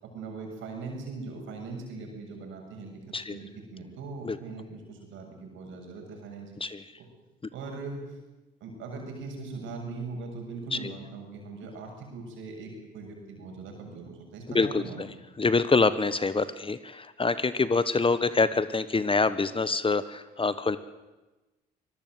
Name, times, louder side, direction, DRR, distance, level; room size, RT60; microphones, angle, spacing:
voice 1, 0.0-7.1 7.5-8.0 8.6-15.2, right 3 dB, 70° right, 2 dB, 7.2 m, -40 dB
voice 2, 14.5-15.1 15.4-20.8, left 3 dB, 25° left, 14 dB, 1.3 m, -26 dB
24.0 x 19.5 x 8.0 m, 1.1 s
hypercardioid pair, 55°, 21 cm